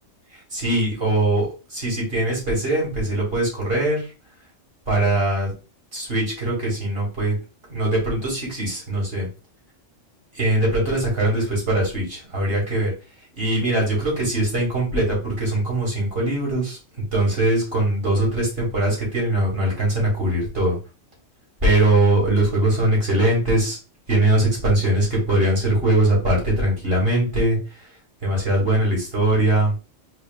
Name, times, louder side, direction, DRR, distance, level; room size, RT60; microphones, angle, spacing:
voice 1, 0.5-4.0 4.9-5.5 5.9-7.3 7.7-9.3 10.3-12.9 13.4-16.8 17.1-20.8 21.6-23.8 24.1-27.6 28.2-29.7, right 1 dB, 50° right, -2 dB, 2.2 m, -21 dB
4.3 x 4.3 x 2.2 m, 0.31 s
omnidirectional pair, 1.3 m